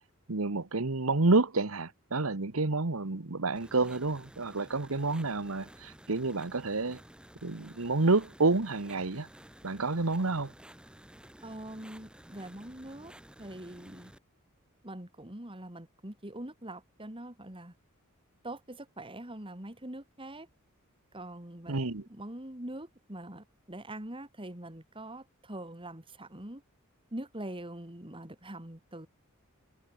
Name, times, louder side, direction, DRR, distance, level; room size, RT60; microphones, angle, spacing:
voice 1, 0.3-7.0 7.4-9.3 9.6-10.5 21.7-22.0, right 3 dB, 70° right, 1.3 m, -29 dB
sound 1, 3.5-14.2, equal, 5° right, 1.8 m, -53 dB
voice 2, 11.4-13.1 13.4-14.1 14.8-17.7 18.4-20.5 21.1-26.6 27.1-29.1, right 1 dB, 25° right, 3.2 m, -43 dB
head